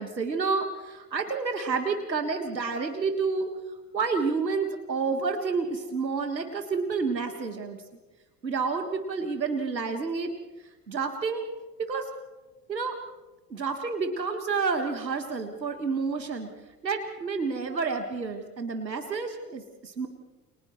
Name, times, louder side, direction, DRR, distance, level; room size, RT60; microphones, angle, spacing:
voice 1, 0.0-3.5 3.9-7.8 8.4-10.3 10.9-11.5 11.8-12.1 12.7-13.0 13.5-16.5 16.8-20.1, right 4 dB, 85° right, 6 dB, 1.7 m, -29 dB
29.0 x 28.0 x 3.2 m, 1.1 s
figure-of-eight pair, 65°, 49 cm